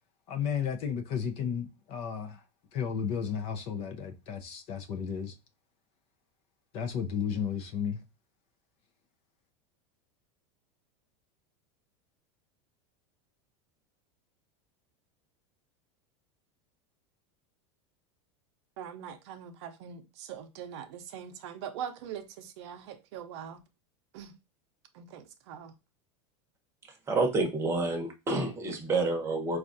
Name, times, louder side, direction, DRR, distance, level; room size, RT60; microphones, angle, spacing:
voice 1, 0.3-2.4 2.7-5.4 6.7-8.0, left 7 dB, 40° left, 0.6 m, -33 dB
voice 2, 18.8-23.6 24.1-24.3 24.9-25.7, right 8 dB, 65° right, 0.6 m, -42 dB
voice 3, 27.1-29.6, right 3 dB, 15° right, 0.9 m, -28 dB
4.5 x 2.4 x 2.5 m
supercardioid pair, 150°, 15 cm